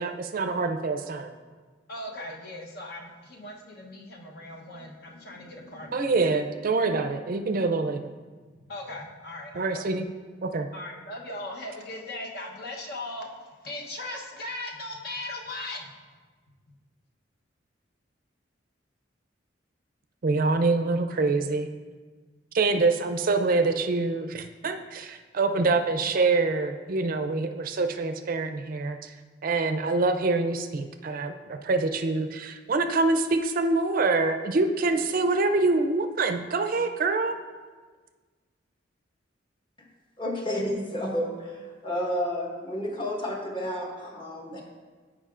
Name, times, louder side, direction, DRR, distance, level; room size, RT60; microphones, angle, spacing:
voice 1, 0.0-1.3 5.9-8.0 9.6-10.0 10.4-10.7 20.2-21.7 22.5-29.1 29.4-37.4, right 3 dB, 50° right, 7 dB, 0.4 m, -25 dB
voice 2, 1.9-6.3 8.6-9.9 10.7-16.0, left 1 dB, 55° left, 0 dB, 0.9 m, -39 dB
voice 3, 40.2-44.6, equal, 25° left, -1 dB, 1.2 m, -31 dB
14.5 x 4.9 x 2.5 m, 1.4 s
head